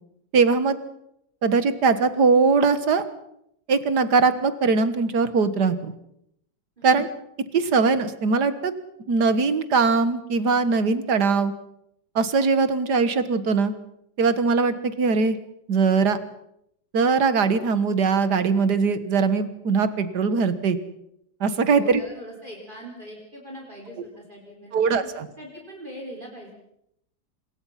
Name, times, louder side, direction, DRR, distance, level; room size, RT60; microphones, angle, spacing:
voice 1, 0.3-0.8 1.4-3.0 3.7-5.9 6.8-7.1 7.5-8.7 9.1-11.5 12.2-13.7 14.2-15.4 15.7-16.2 16.9-20.8 21.4-22.0 24.7-25.3, right 4 dB, 80° right, 12 dB, 2.0 m, -21 dB
voice 2, 21.6-25.1 25.4-26.5, equal, 30° right, 0 dB, 4.5 m, -41 dB
25.5 x 22.5 x 5.8 m, 0.76 s
omnidirectional pair, 1.7 m